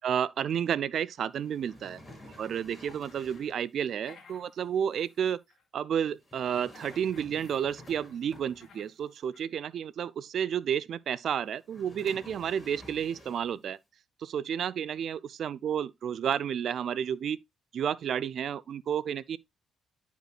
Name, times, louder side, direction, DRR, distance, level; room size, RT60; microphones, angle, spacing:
voice 1, 0.0-2.0 2.4-5.4 5.7-13.8 14.2-17.4 17.7-19.4, right 8 dB, 65° right, 0.3 m, -31 dB
sound 1, 1.4-3.6 6.2-8.9 11.6-13.6, left 1 dB, 15° left, 4.2 m, -51 dB
sound 2, 2.4-5.6 6.5-9.0 9.3-9.4, left 5 dB, 55° left, 2.2 m, -58 dB
11.0 x 5.1 x 2.4 m
cardioid pair, 90°, 0 cm